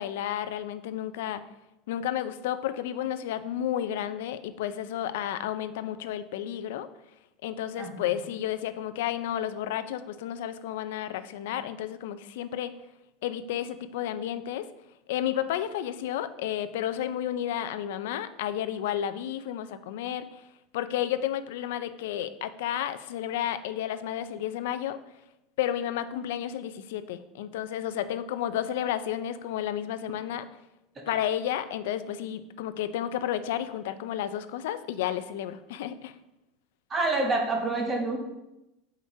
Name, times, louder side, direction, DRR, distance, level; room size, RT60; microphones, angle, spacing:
voice 1, 0.0-1.4 1.9-6.9 7.4-12.7 13.2-14.7 15.1-20.3 20.7-25.0 25.6-30.5 31.1-36.1, left 11 dB, 85° left, 12 dB, 0.4 m, -32 dB
voice 2, 7.8-8.2 31.0-31.1 36.9-38.2, right 2 dB, 20° right, 2 dB, 0.9 m, -28 dB
7.7 x 5.0 x 2.7 m, 0.93 s
supercardioid pair, 150°, 0 cm